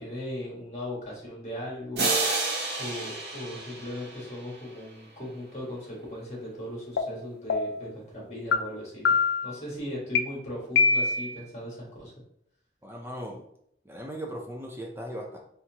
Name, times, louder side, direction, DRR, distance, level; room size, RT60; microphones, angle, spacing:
voice 1, 0.0-2.1 2.8-9.1 9.4-12.1, left 1 dB, 40° left, -4 dB, 1.7 m, -38 dB
sound 1, 2.0-4.8, right 3 dB, 70° right, 0.9 m, -30 dB
sound 2, 7.0-7.1 7.5-7.9 8.5-8.6 9.1-9.5 10.2-10.3 10.8-11.4, left 4 dB, 85° left, 0.4 m, -23 dB
voice 2, 12.8-13.4 13.8-15.4, equal, 15° right, 0 dB, 0.5 m, -38 dB
4.2 x 3.5 x 2.9 m, 0.72 s
head